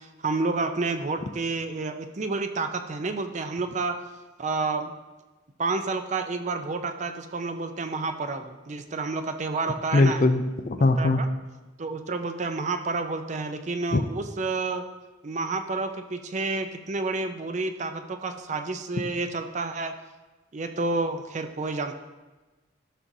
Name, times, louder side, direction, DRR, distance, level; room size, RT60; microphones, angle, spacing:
voice 1, 0.0-4.0 4.4-4.9 5.6-10.2 11.0-11.3 11.8-14.8 15.2-19.9 20.5-21.9, right 3 dB, 40° right, 8 dB, 0.5 m, -30 dB
voice 2, 9.9-11.2 13.9-14.0, left 2 dB, 40° left, 9 dB, 0.4 m, -21 dB
12.0 x 6.0 x 2.7 m, 1.2 s
head